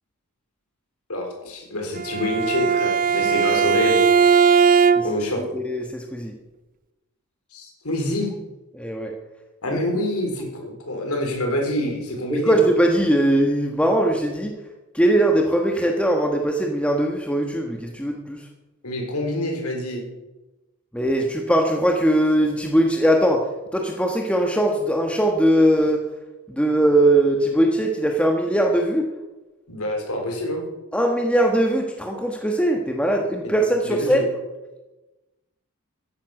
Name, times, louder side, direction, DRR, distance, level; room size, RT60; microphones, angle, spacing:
voice 1, 1.1-4.1 5.0-5.4 7.5-8.3 9.6-12.6 18.8-20.0 29.7-30.6 33.4-33.5 33.8-34.3, left 1 dB, 80° left, 2 dB, 4.1 m, -26 dB
Bowed string instrument, 1.9-5.3, right 6 dB, 40° right, 0.5 m, -18 dB
voice 2, 5.4-6.3 8.7-9.1 9.7-9.8 12.3-14.6 14.9-18.5 20.9-26.0 26.5-29.1 30.9-34.2, right 1 dB, 5° left, 2 dB, 1.3 m, -20 dB
14.5 x 11.5 x 6.0 m, 1.1 s
head